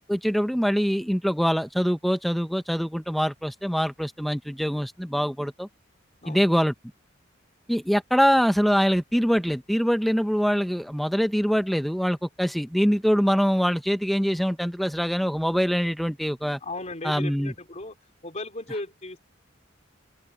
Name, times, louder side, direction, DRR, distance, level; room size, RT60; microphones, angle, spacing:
voice 1, 0.1-5.7 6.3-6.7 7.7-16.6 17.0-17.5, equal, ahead, 0.7 m, -24 dB
voice 2, 6.2-6.6 16.6-18.0 18.2-19.2, left 2 dB, 35° left, 4.0 m, -36 dB
open air
head